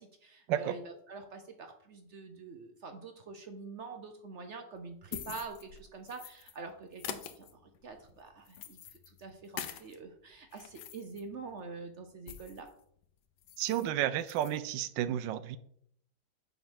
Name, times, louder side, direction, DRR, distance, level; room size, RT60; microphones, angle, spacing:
voice 1, 0.0-12.7, right 4 dB, 60° right, 0.7 m, -46 dB
sound 1, 4.8-6.6 6.9-10.0 10.4-12.7 13.0-13.1 13.4-13.9 14.2-14.6, left 9 dB, 70° left, 1.2 m, -45 dB
voice 2, 13.6-15.6, right 11 dB, 85° right, 1.3 m, -32 dB
6.8 x 3.8 x 6.3 m
omnidirectional pair, 1.9 m